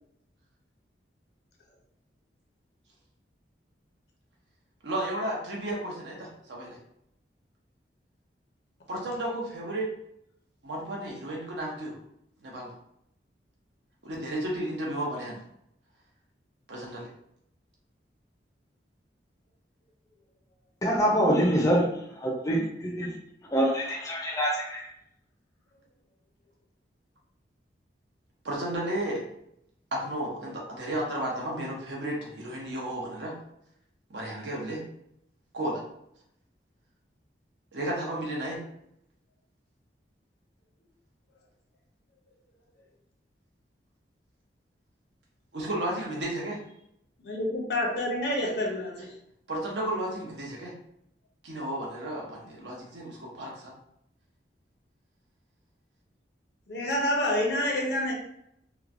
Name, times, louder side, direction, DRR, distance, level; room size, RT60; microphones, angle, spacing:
voice 1, 4.8-6.8 8.9-9.9 10.6-12.0 12.4-12.7 14.0-15.4 16.7-17.1 28.4-29.2 29.9-33.3 34.1-34.8 35.5-35.8 37.7-38.6 45.5-46.6 49.5-50.7 51.4-53.7, right 1 dB, 80° right, -2 dB, 0.8 m, -33 dB
voice 2, 20.8-21.8 22.5-22.6 22.8-23.1 23.5-24.8, equal, 20° left, -2 dB, 0.4 m, -24 dB
voice 3, 47.2-49.1 56.7-58.1, left 1 dB, 65° left, 0 dB, 0.6 m, -28 dB
3.0 x 2.1 x 2.5 m, 0.75 s
head